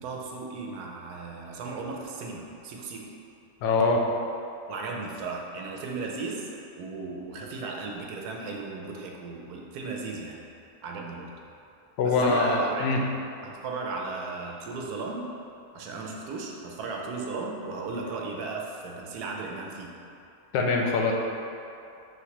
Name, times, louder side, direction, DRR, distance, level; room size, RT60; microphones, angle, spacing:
voice 1, 0.0-3.1 4.7-6.5 6.8-10.4 10.8-11.3 12.0-12.9 13.4-15.3 15.7-19.9, right 3 dB, 80° right, 0 dB, 1.1 m, -36 dB
voice 2, 3.6-4.0 12.0-13.0 20.5-21.1, left 3 dB, 85° left, 0 dB, 1.2 m, -23 dB
5.3 x 3.2 x 2.9 m, 2.7 s
omnidirectional pair, 1.7 m